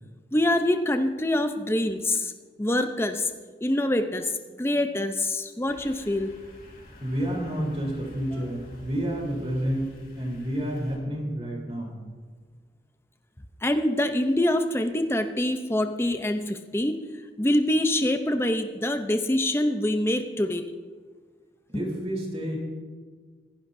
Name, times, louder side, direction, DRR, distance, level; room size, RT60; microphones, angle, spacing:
voice 1, 0.3-2.3 2.6-3.3 3.6-4.3 4.6-6.3 13.6-17.0 17.4-20.7, left 1 dB, 15° left, 7 dB, 0.6 m, -25 dB
sound 1, 5.7-11.0, left 1 dB, 50° left, 2.7 m, -48 dB
voice 2, 7.0-11.9 21.7-22.6, equal, 35° right, -1 dB, 3.6 m, -30 dB
24.5 x 11.5 x 2.7 m, 1.5 s
head